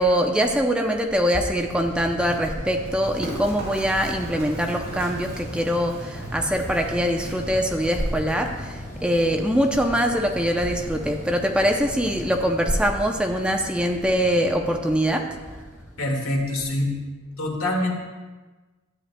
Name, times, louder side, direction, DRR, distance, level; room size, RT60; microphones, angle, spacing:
voice 1, 0.0-15.3, equal, 5° right, 3 dB, 0.5 m, -23 dB
sound 1, 1.5-16.5, equal, 35° left, 2.9 m, -38 dB
Run, 2.8-13.4, right 1 dB, 55° right, 2.2 m, -42 dB
voice 2, 16.0-16.9 17.4-17.9, left 1 dB, 85° left, 0 dB, 1.8 m, -25 dB
12.5 x 8.7 x 2.2 m, 1.3 s
head